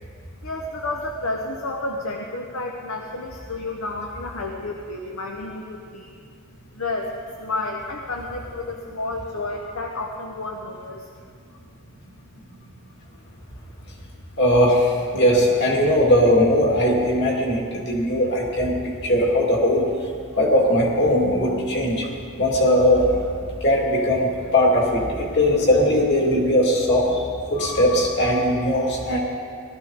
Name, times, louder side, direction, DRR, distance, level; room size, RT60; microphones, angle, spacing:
voice 1, 0.4-6.1 6.7-11.0, left 2 dB, 65° left, 1 dB, 0.9 m, -31 dB
voice 2, 14.4-19.9 20.4-22.1 22.4-23.2 23.6-27.2 27.5-29.2, left 1 dB, 50° left, -1 dB, 2.5 m, -19 dB
18.0 x 12.5 x 4.0 m, 2.3 s
head